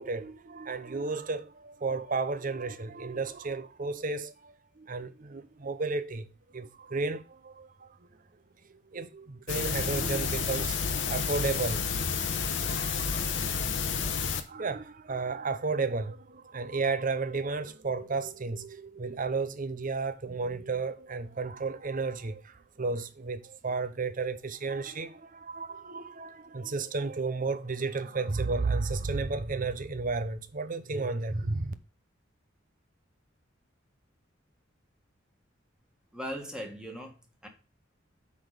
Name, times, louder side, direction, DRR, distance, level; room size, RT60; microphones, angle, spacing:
voice 1, 0.0-8.1 8.7-13.6 14.4-31.7, right 3 dB, 45° right, 0.7 m, -33 dB
sound 1, 9.5-14.4, left 6 dB, 65° left, 0.9 m, -30 dB
voice 2, 36.1-37.5, equal, 5° right, 1.8 m, -39 dB
8.4 x 4.0 x 6.7 m
head